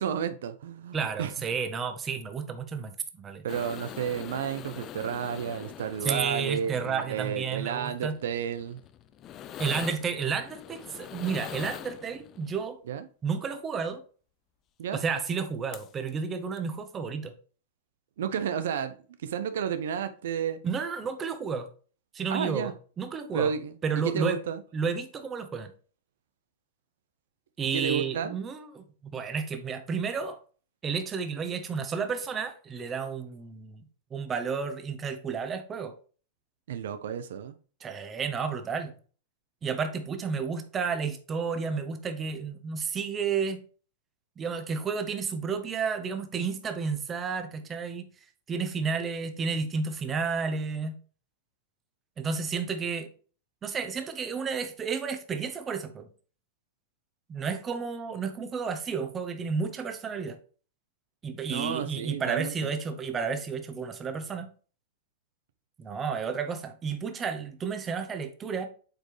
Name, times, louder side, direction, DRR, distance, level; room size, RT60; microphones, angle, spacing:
voice 1, 0.0-1.3 3.4-8.8 12.9-13.1 14.8-15.0 18.2-19.0 19.2-20.6 22.3-22.7 23.3-23.7 24.0-24.6 27.7-28.4 36.7-37.6 61.5-62.5, right 8 dB, 75° right, 0.7 m, -31 dB
voice 2, 0.9-3.4 6.0-8.1 9.6-12.8 13.2-14.0 14.9-17.3 20.6-21.7 22.1-23.5 23.8-24.4 24.7-25.7 27.6-30.4 30.8-33.8 34.1-36.0 37.8-38.9 39.6-43.6 44.4-48.0 48.5-50.9 52.2-53.1 53.6-56.1 57.3-60.4 61.2-64.5 65.8-68.7, right 5 dB, 20° right, 1.1 m, -31 dB
sound 1, 3.5-12.5 15.5-15.6 15.7-16.1 16.6-16.7, left 10 dB, 30° left, 0.5 m, -44 dB
7.8 x 4.4 x 3.2 m
hypercardioid pair, 140°, 0 cm